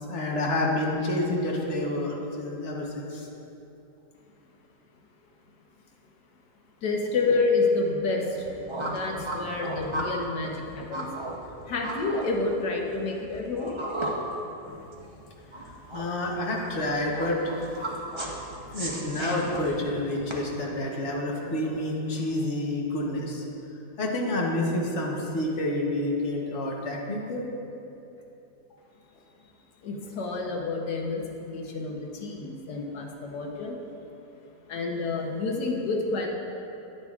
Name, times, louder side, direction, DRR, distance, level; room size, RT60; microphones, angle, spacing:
voice 1, 0.1-3.3 14.6-14.9 15.6-17.6 18.2-18.3 18.7-23.4 24.0-27.4, left 1 dB, 50° left, -1 dB, 1.3 m, -29 dB
voice 2, 6.8-11.1 11.6-13.7 29.8-31.2 31.5-33.8 34.7-36.3, left 3 dB, 85° left, 1 dB, 1.5 m, -29 dB
sound 1, 8.2-20.3, right 1 dB, 40° right, 0.4 m, -36 dB
9.7 x 9.5 x 2.4 m, 2.9 s
omnidirectional pair, 1.7 m